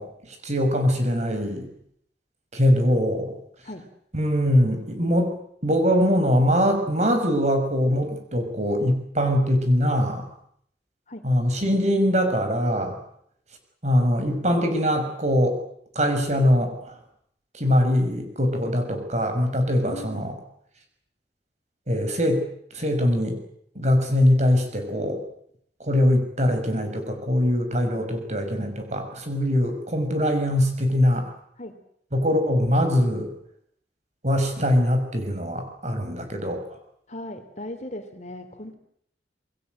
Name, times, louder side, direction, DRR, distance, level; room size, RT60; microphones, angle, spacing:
voice 1, 0.0-1.7 2.5-3.4 4.1-5.3 5.6-10.3 11.2-13.0 13.8-15.6 15.9-17.0 17.5-20.3 21.9-22.4 22.7-23.4 23.7-25.2 25.8-31.3 32.1-33.3 34.2-36.7, equal, 40° right, 6 dB, 6.0 m, -22 dB
voice 2, 19.8-20.3 31.6-31.7 37.1-38.8, left 1 dB, 40° left, 7 dB, 3.2 m, -37 dB
28.0 x 22.0 x 7.9 m, 0.68 s
head